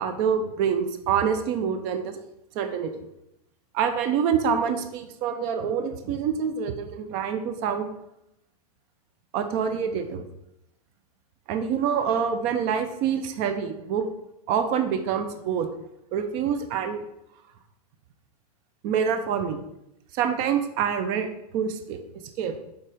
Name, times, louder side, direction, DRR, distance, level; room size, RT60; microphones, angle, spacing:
voice 1, 0.0-2.2 2.5-2.9 3.7-7.9 9.3-10.2 11.5-14.0 14.5-15.7 16.1-17.0 18.8-19.6 20.1-21.3 21.5-22.0 22.4-22.6, right 7 dB, 35° right, 8 dB, 0.7 m, -26 dB
6.9 x 4.2 x 5.0 m, 0.83 s
hypercardioid pair, 140°, 21 cm